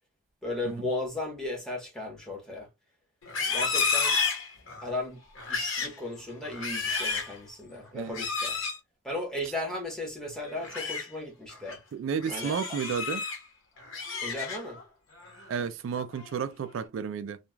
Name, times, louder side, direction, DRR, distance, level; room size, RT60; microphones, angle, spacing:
voice 1, 0.4-2.7 3.5-4.2 4.8-5.2 5.5-8.6 9.0-11.8 12.3-12.6 14.2-14.8, left 2 dB, 5° left, 1.1 m, -35 dB
Livestock farm animals working animals, 3.2-4.9 5.4-6.0 6.4-7.4 8.1-8.8 10.5-11.0 11.5-11.8 12.2-13.4 13.8-14.8 15.2-15.5 16.0-16.4, left 5 dB, 85° left, 1.1 m, -31 dB
voice 2, 11.9-13.2 15.5-17.4, right 7 dB, 75° right, 0.3 m, -32 dB
3.1 x 2.3 x 2.2 m
head